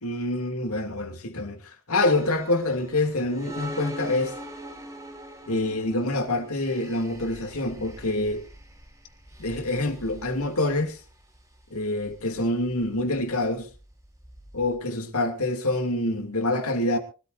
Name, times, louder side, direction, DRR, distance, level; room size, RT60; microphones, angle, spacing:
voice 1, 0.0-4.3 5.5-8.4 9.4-11.0 11.7-13.7 14.5-17.0, left 2 dB, 80° left, 2.7 m, -26 dB
sound 1, 2.0-14.8, equal, 15° right, 3.1 m, -43 dB
24.5 x 13.5 x 2.6 m
head